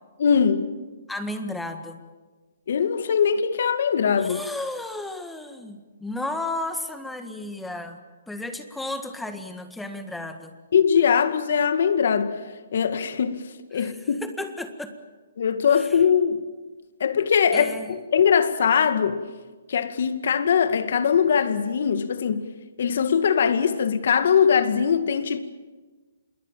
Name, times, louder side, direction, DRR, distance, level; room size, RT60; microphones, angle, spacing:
voice 1, 0.2-0.7 2.7-4.4 10.7-12.4 12.7-13.4 13.7-14.2 15.4-16.4 17.0-17.7 18.1-19.2 19.7-22.5 22.8-25.4, left 7 dB, 65° left, 2.1 m, -21 dB
voice 2, 1.1-2.0 4.2-8.0 8.3-10.6 13.7-13.9 14.2-14.9 15.7-16.0 17.5-17.9, left 2 dB, 5° left, 1.8 m, -33 dB
27.0 x 22.0 x 7.5 m
hypercardioid pair, 150°, 0 cm